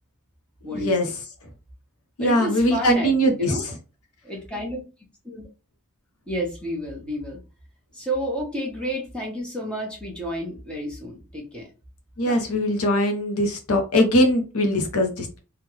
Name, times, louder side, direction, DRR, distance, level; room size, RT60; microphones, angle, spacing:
voice 1, 0.7-1.1 2.2-3.8 12.2-15.4, equal, 80° left, 4 dB, 0.9 m, -21 dB
voice 2, 2.2-3.6 4.2-4.8 5.2-5.4 6.3-7.4 7.9-11.7 12.2-12.4, equal, 5° left, -2 dB, 1.1 m, -30 dB
3.6 x 2.4 x 3.1 m, 0.32 s
head